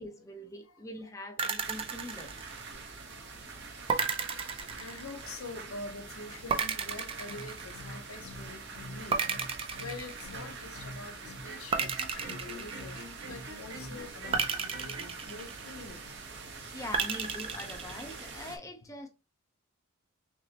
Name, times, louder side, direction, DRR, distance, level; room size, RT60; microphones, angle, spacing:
voice 1, 0.0-2.3 16.7-19.1, left 1 dB, 15° left, 0.6 m, -43 dB
sound 1, 1.4-3.0 3.9-5.5 6.5-8.2 9.1-10.7 11.7-13.4 14.3-16.0 16.9-18.3, right 5 dB, 25° right, 0.3 m, -34 dB
sound 2, 1.6-18.6, right 4 dB, 55° right, 1.0 m, -45 dB
voice 2, 2.7-3.4 3.9-4.0 4.7-9.3 9.8-16.0, left 3 dB, 80° left, 0.7 m, -46 dB
sound 3, 7.2-15.3, right 1 dB, 70° right, 1.6 m, -45 dB
5.9 x 2.1 x 2.8 m
head